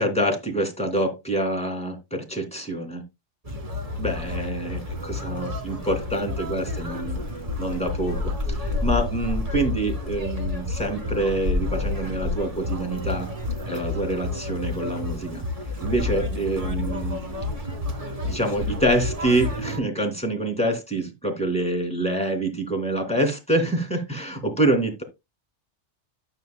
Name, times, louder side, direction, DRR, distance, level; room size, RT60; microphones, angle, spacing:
voice 1, 0.0-3.0 4.0-7.2 7.6-13.3 13.7-15.4 15.8-17.2 18.2-25.0, right 1 dB, 5° left, 4 dB, 2.8 m, -26 dB
Conversation, 3.4-19.8, left 2 dB, 30° right, 1.9 m, -29 dB
13.0 x 7.6 x 2.3 m, 0.23 s
omnidirectional pair, 1.2 m